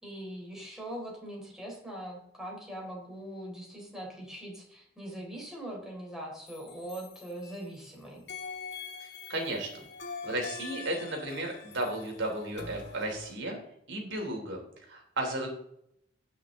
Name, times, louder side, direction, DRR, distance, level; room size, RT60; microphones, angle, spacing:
voice 1, 0.0-8.2, right 1 dB, 5° right, -3 dB, 3.8 m, -41 dB
sound 1, 6.5-7.9 8.3-13.3, left 5 dB, 60° left, 1.7 m, -44 dB
voice 2, 9.0-9.8 10.2-13.6 13.9-14.6 14.9-15.5, right 1 dB, 65° right, 1 dB, 3.4 m, -34 dB
17.5 x 6.0 x 3.8 m, 0.74 s
head